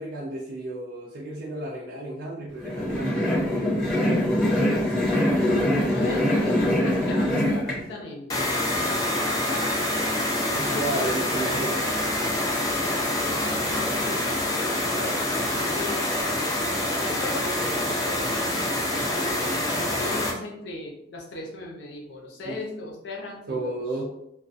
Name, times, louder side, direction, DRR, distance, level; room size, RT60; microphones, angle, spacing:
voice 1, 0.0-4.3 10.5-11.9 22.4-22.6 23.5-24.0, right 1 dB, 60° right, -3 dB, 0.4 m, -33 dB
sound 1, 2.6-7.8, left 1 dB, ahead, 0.9 m, -23 dB
voice 2, 5.8-9.7 10.5-10.8 13.2-14.4 14.9-15.2 15.7-16.2 17.0-24.0, left 2 dB, 70° left, -2 dB, 0.7 m, -38 dB
sound 2, 8.3-20.3, left 1 dB, 20° left, 0.4 m, -26 dB
2.3 x 2.3 x 2.5 m, 0.80 s
head